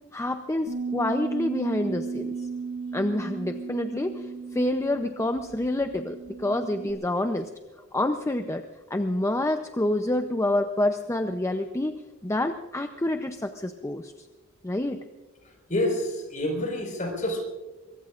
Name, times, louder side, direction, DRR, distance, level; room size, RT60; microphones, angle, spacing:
voice 1, 0.1-2.5 2.9-7.5 7.9-8.7 8.9-11.9 12.2-14.1 14.6-15.0, left 1 dB, 15° left, 7 dB, 0.6 m, -27 dB
Bass guitar, 0.7-6.9, right 5 dB, 70° right, 2.7 m, -35 dB
voice 2, 15.7-17.4, left 1 dB, 35° left, 2 dB, 4.8 m, -28 dB
23.5 x 23.0 x 2.5 m, 1.2 s
head